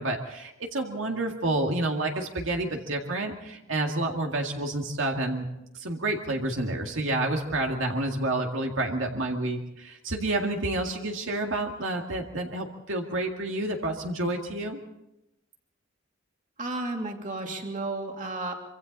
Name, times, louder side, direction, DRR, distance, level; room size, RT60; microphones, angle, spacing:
voice 1, 0.0-5.5 5.7-14.8, right 2 dB, 80° right, 2 dB, 2.1 m, -29 dB
voice 2, 16.6-18.5, right 2 dB, 40° right, 2 dB, 2.8 m, -32 dB
25.5 x 25.0 x 4.1 m, 0.89 s
head